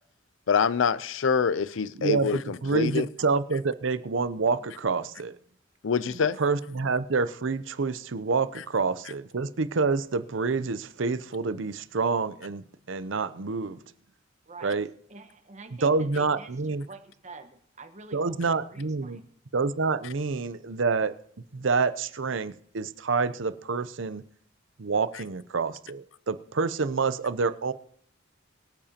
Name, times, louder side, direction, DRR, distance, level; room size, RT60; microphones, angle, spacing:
voice 1, 0.5-3.1 5.8-6.4, left 6 dB, 70° left, 0.5 m, -25 dB
voice 2, 2.0-5.4 6.1-13.8 14.6-14.9 15.8-16.9 18.1-19.2 19.5-21.1 21.5-24.2 24.8-27.7, right 4 dB, 70° right, 0.7 m, -27 dB
voice 3, 14.5-14.8 15.1-16.5 16.8-19.3, right 3 dB, 35° right, 1.3 m, -47 dB
24.0 x 8.8 x 2.9 m
head